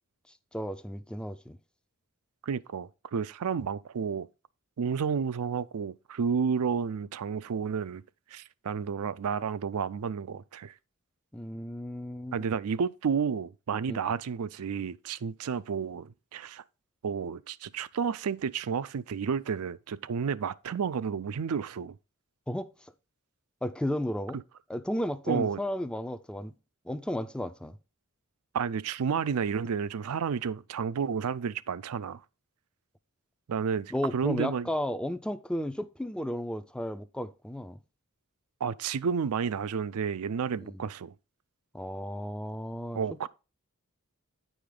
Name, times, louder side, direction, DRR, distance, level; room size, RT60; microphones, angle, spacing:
voice 1, 0.5-1.6 11.3-12.5 13.9-14.0 22.5-22.9 23.6-24.4 24.7-26.5 26.8-27.8 33.9-37.8 40.6-40.8 41.7-43.3, left 1 dB, 5° left, 0.4 m, -34 dB
voice 2, 2.4-4.3 4.8-8.0 8.3-10.7 12.3-16.6 17.0-22.0 25.3-25.6 28.5-32.2 33.5-34.7 38.6-41.1 42.9-43.3, right 6 dB, 75° right, 0.4 m, -31 dB
9.5 x 5.0 x 3.7 m
head